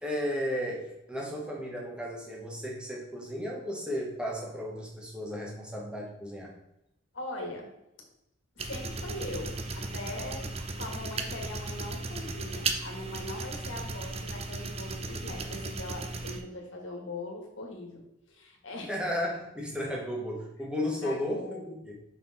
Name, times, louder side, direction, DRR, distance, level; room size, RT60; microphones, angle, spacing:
voice 1, 0.0-6.5 18.9-21.9, equal, 5° right, -2 dB, 1.3 m, -34 dB
voice 2, 7.1-7.7 8.5-18.0 18.3-18.9 21.0-21.6, left 2 dB, 70° left, 1 dB, 1.6 m, -41 dB
sound 1, 8.6-16.4, right 3 dB, 30° right, 0.5 m, -36 dB
5.6 x 4.3 x 4.1 m, 0.87 s
head